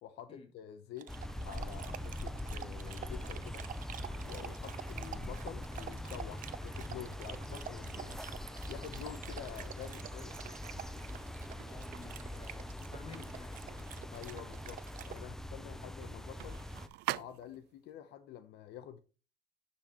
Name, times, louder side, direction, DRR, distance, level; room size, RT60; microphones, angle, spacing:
voice 1, 0.0-1.1 1.4-3.6 4.2-8.2 8.7-10.4 14.1-16.6 17.2-19.0, left 10 dB, 85° left, 0.9 m, -48 dB
Dog, 1.0-15.2, right 10 dB, 55° right, 0.8 m, -49 dB
sound 1, 1.1-16.9, left 1 dB, 5° left, 0.6 m, -43 dB
sound 2, 10.7-17.8, right 18 dB, 85° right, 0.4 m, -47 dB
voice 2, 11.6-13.9 15.8-15.9, left 3 dB, 35° left, 2.7 m, -52 dB
10.0 x 5.7 x 3.0 m
cardioid pair, 110°, 17 cm